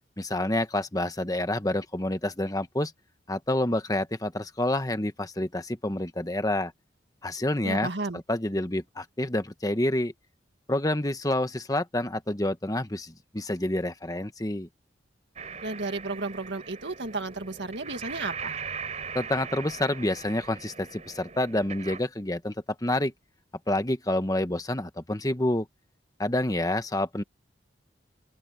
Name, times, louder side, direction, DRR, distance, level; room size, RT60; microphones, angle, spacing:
voice 1, 0.2-2.9 3.3-6.7 7.2-7.9 8.3-10.1 10.7-14.7 19.1-22.5 22.8-23.1 23.7-25.7 26.2-27.2, left 1 dB, 20° left, 1.2 m, -28 dB
voice 2, 7.6-8.2 15.6-18.6, right 3 dB, 75° right, 1.9 m, -33 dB
sound 1, 15.4-22.0, right 6 dB, 40° right, 3.8 m, -40 dB
open air
head